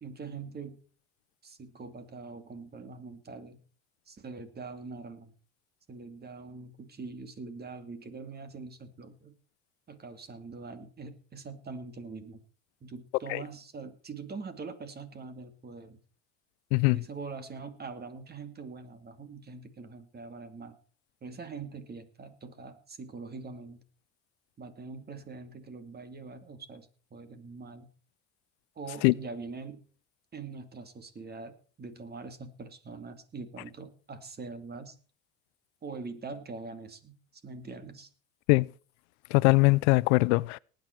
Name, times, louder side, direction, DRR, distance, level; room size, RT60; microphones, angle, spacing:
voice 1, 0.0-0.8 1.4-3.6 4.1-5.3 5.9-9.4 9.9-12.4 12.8-16.0 16.9-20.8 21.2-23.8 24.6-27.9 28.8-29.8 30.3-35.0 35.8-38.1, right 4 dB, 30° right, 2.5 m, -43 dB
voice 2, 39.3-40.6, left 25 dB, 85° left, 0.6 m, -21 dB
18.5 x 9.6 x 4.6 m
supercardioid pair, 100°, 34 cm